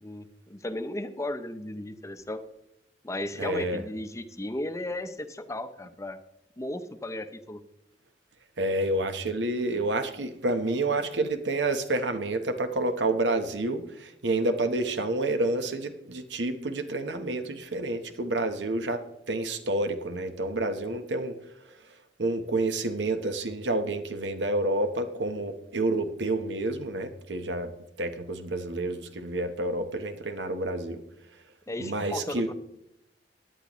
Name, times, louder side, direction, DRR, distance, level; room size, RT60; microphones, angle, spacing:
voice 1, 0.0-2.4 3.0-6.2 6.6-7.6 31.7-32.5, left 1 dB, 15° left, 10 dB, 0.6 m, -35 dB
voice 2, 3.4-3.8 8.6-13.8 14.2-19.0 19.3-21.3 22.2-27.7 28.0-31.0 31.8-32.5, right 2 dB, 80° right, 9 dB, 1.0 m, -29 dB
16.5 x 10.0 x 3.0 m, 0.82 s
head